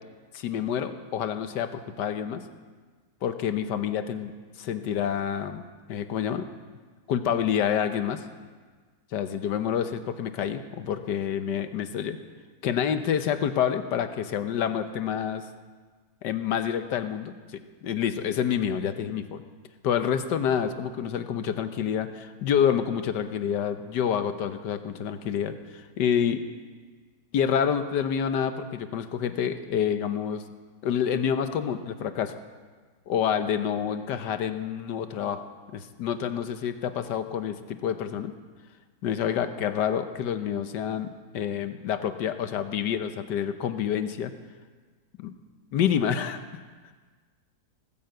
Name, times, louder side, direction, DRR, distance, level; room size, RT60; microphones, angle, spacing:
voice 1, 0.3-2.4 3.2-4.3 4.6-5.6 5.9-6.5 7.1-8.2 9.1-12.2 12.6-15.5 16.2-17.3 17.8-19.4 19.8-26.4 27.3-30.4 30.8-32.3 33.1-35.4 35.7-38.3 39.0-44.3 45.2-45.3 45.7-46.4, left 8 dB, 90° left, 10 dB, 1.5 m, -28 dB
18.0 x 10.0 x 7.8 m, 1.5 s
omnidirectional pair, 1.8 m